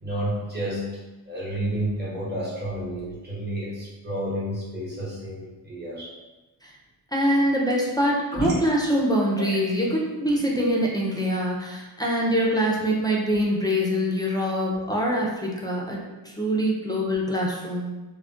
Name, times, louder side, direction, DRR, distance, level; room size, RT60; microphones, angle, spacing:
voice 1, 0.0-0.9 1.3-6.1 8.3-8.5, right 1 dB, 25° right, -7 dB, 0.9 m, -30 dB
voice 2, 7.1-16.0 16.2-17.9, equal, 10° left, -3 dB, 0.3 m, -24 dB
2.3 x 2.1 x 3.6 m, 1.1 s
wide cardioid pair, 135°, 42 cm